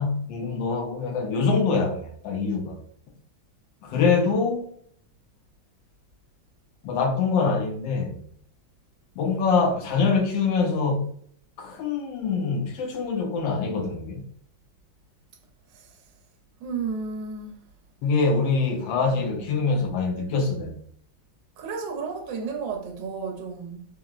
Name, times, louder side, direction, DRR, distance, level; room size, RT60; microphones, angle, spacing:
voice 1, 0.0-2.8 3.8-4.6 6.8-8.2 9.2-11.1 11.6-14.2 18.0-20.8, left 4 dB, 75° left, 1.3 m, -24 dB
voice 2, 16.6-17.6 19.0-19.3 21.6-23.9, right 5 dB, 75° right, 1.2 m, -32 dB
3.8 x 2.0 x 2.3 m
omnidirectional pair, 2.2 m